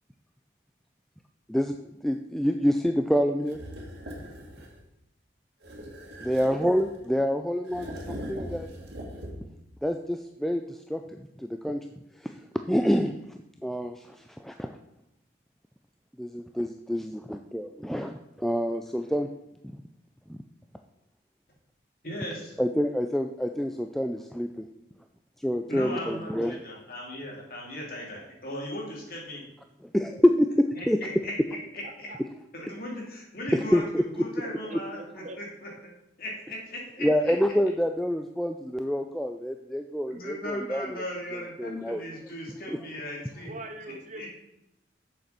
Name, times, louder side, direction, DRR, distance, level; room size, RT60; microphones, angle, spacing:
voice 1, 2.0-3.6 6.2-8.7 9.8-11.8 12.2-12.3 12.7-13.2 13.6-14.7 16.2-19.3 20.3-20.4 22.6-24.6 25.4-26.6 29.9-31.0 33.5-34.0 37.0-41.0 41.3-42.0 42.7-42.8, equal, ahead, 5 dB, 0.4 m, -27 dB
sound 1, 3.5-4.8 5.6-7.1 7.6-9.6, equal, 65° right, 2.1 m, -40 dB
voice 2, 22.0-22.6 25.7-29.4 30.8-32.1 32.5-33.8 34.1-35.9 36.2-37.5 40.1-43.5 44.1-44.3, left 1 dB, 50° left, -2 dB, 3.0 m, -38 dB
voice 3, 31.8-32.2 34.9-35.4 43.4-44.3, right 1 dB, 40° right, 6 dB, 0.9 m, -42 dB
7.8 x 6.8 x 6.0 m, 0.84 s
head